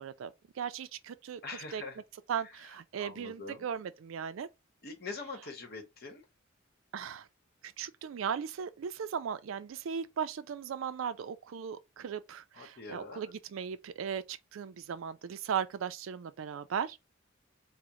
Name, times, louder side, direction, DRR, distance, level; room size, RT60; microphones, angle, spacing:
voice 1, 0.0-1.4 1.7-1.8 2.3-4.5 6.9-7.3 7.6-17.0, right 7 dB, 80° right, 0.4 m, -37 dB
voice 2, 1.4-2.0 3.0-3.7 4.8-6.2 12.6-13.2, left 3 dB, 50° left, 0.9 m, -43 dB
3.6 x 2.1 x 2.9 m
head